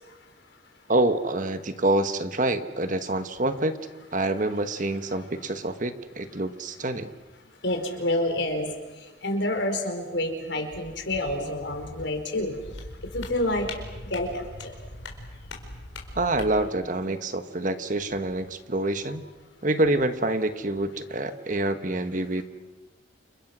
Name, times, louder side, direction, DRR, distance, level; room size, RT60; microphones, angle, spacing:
voice 1, 0.9-3.8 4.1-7.1 16.1-19.2 19.6-22.4, right 2 dB, 40° right, 9 dB, 1.3 m, -26 dB
voice 2, 7.6-8.7 9.2-12.5 13.1-13.7 14.1-14.4, left 1 dB, 65° left, 4 dB, 4.8 m, -28 dB
sound 1, 12.6-16.7, left 2 dB, 85° left, 4.6 m, -40 dB
29.5 x 29.0 x 6.2 m, 1.2 s
head